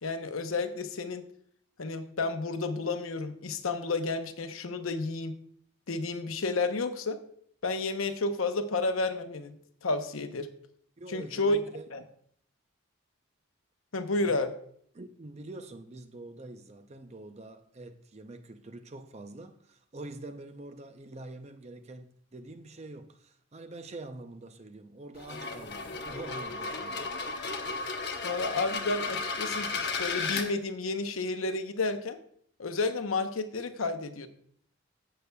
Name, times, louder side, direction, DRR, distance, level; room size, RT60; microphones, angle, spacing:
voice 1, 0.0-1.3 1.8-5.3 5.9-7.2 7.6-9.6 9.8-10.5 11.1-11.6 11.9-12.0 13.9-14.5 28.2-32.2 32.6-34.3, left 3 dB, 85° left, 0.8 m, -31 dB
voice 2, 11.0-11.8 14.2-14.4 14.9-27.2, right 2 dB, 30° right, 0.5 m, -45 dB
sound 1, 25.2-30.5, left 4 dB, 55° left, 1.0 m, -34 dB
15.0 x 6.7 x 2.3 m
head